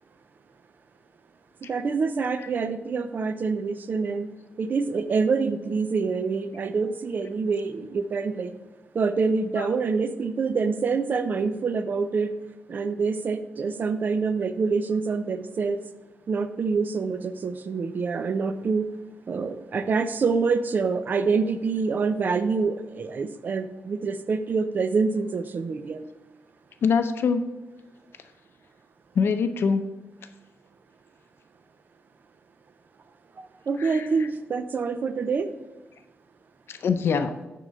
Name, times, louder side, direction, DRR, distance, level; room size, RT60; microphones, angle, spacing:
voice 1, 1.7-4.3 4.6-8.5 8.9-12.3 12.7-15.8 16.3-18.9 19.3-26.0 33.4-35.5, right 4 dB, 45° right, 10 dB, 0.5 m, -26 dB
voice 2, 26.8-27.5 29.2-29.9 33.8-34.0 36.7-37.3, left 5 dB, 70° left, 8 dB, 0.6 m, -24 dB
9.3 x 3.8 x 6.7 m, 1.1 s
wide cardioid pair, 180°, 4 cm